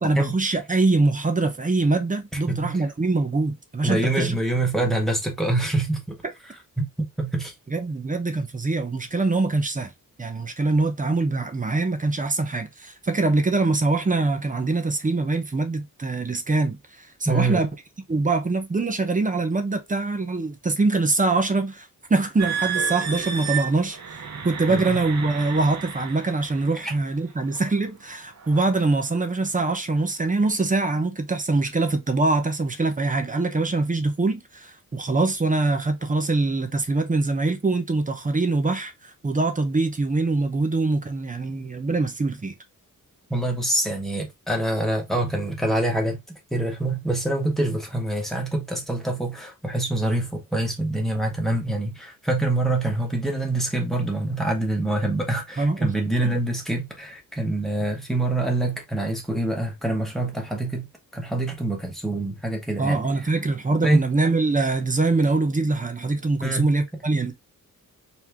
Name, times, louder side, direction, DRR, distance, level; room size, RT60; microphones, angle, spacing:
voice 1, 0.0-4.4 4.8-4.9 7.7-9.9 10.2-17.7 18.1-24.2 24.4-42.5 55.6-55.9 56.2-56.4 62.8-67.3, right 3 dB, 25° right, 0.9 m, -23 dB
voice 2, 3.8-6.1 6.8-7.5 17.2-17.6 24.7-25.0 26.8-26.9 43.3-46.2 46.5-60.9 61.1-63.3 63.8-64.0 66.4-66.7 67.1-67.2, right 2 dB, ahead, 1.5 m, -25 dB
sound 1, 22.4-26.9 27.5-27.8 28.4-28.7, right 7 dB, 50° right, 1.1 m, -32 dB
4.3 x 3.0 x 3.4 m
wide cardioid pair, 135°, 34 cm